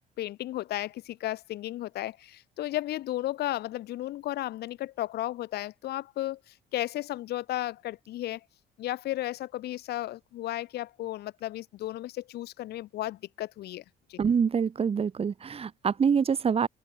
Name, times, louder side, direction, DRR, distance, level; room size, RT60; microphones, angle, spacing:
voice 1, 0.2-6.4 6.7-8.4 8.8-13.8 14.1-14.2, left 15 dB, 75° left, 3.3 m, -34 dB
voice 2, 14.2-16.7, right 6 dB, 35° right, 3.4 m, -25 dB
cardioid pair, 110°, 17 cm